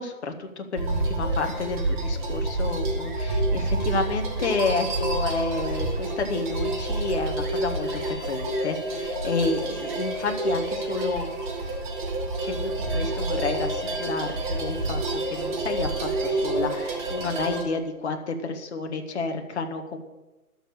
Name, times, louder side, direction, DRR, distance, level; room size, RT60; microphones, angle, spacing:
voice 1, 0.0-11.3 12.4-20.0, left 3 dB, 45° left, 5 dB, 1.6 m, -30 dB
sound 1, 0.8-17.6, right 2 dB, 30° right, 1.8 m, -28 dB
11.5 x 6.8 x 6.5 m, 1.1 s
figure-of-eight pair, 140°, 45 cm